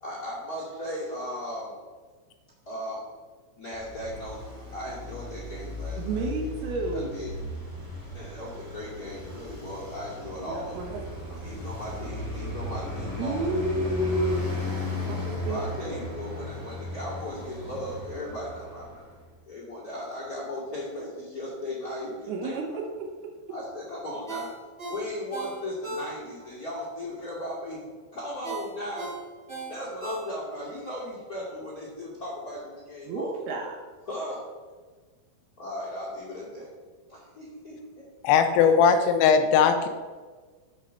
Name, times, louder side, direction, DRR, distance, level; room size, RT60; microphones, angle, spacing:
voice 1, 0.0-1.7 2.6-3.0 3.6-4.4 4.7-6.2 6.9-7.3 8.1-10.7 11.3-13.5 15.5-19.0 19.5-22.6 23.5-24.5 24.9-27.8 28.1-29.1 29.7-33.3 34.1-34.4 35.6-36.7 37.1-37.7 38.3-38.4, left 1 dB, 35° left, -5 dB, 1.5 m, -37 dB
Traffic noise roadway noise, 3.7-19.2, left 2 dB, 20° left, 0.5 m, -36 dB
voice 2, 6.0-7.1 10.4-11.0 13.2-14.5 15.1-15.6 22.3-23.6 33.0-33.8, right 2 dB, 75° right, 1 dB, 2.3 m, -31 dB
Ringtone, 24.3-26.5 26.9-27.0 28.4-30.7 31.1-31.2, right 2 dB, 60° right, 0.6 m, -37 dB
voice 3, 38.3-39.9, left 6 dB, 85° left, 7 dB, 3.4 m, -19 dB
11.0 x 5.2 x 6.8 m, 1.4 s
omnidirectional pair, 5.8 m